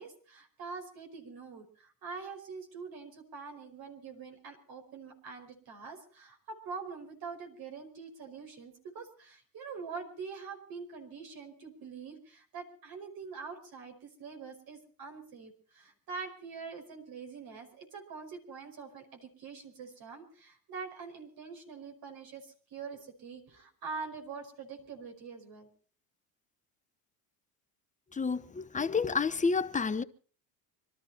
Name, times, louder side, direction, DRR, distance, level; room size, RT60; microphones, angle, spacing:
voice 1, 0.0-25.7, right 5 dB, 55° right, 5.2 m, -44 dB
voice 2, 28.1-30.0, left 5 dB, 15° left, 0.8 m, -30 dB
25.0 x 12.5 x 4.3 m
supercardioid pair, 100°, 44 cm